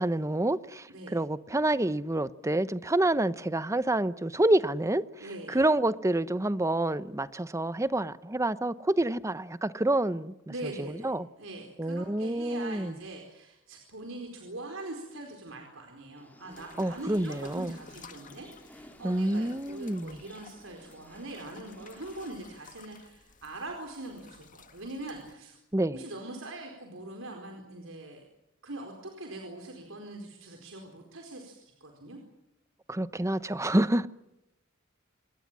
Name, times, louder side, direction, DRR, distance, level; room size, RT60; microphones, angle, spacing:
voice 1, 0.0-10.3 10.8-11.3 11.8-12.9 16.8-17.8 19.0-20.2 25.7-26.0 32.9-34.1, right 1 dB, 15° right, 0.8 m, -28 dB
voice 2, 5.2-5.6 10.5-11.1 11.4-25.6 25.9-28.3 28.6-32.2, right 2 dB, 85° right, 4.5 m, -42 dB
sound 1, 16.2-22.3, left 1 dB, 10° left, 3.0 m, -55 dB
sound 2, 16.5-25.3, left 5 dB, 40° left, 1.9 m, -54 dB
27.5 x 20.5 x 7.5 m
head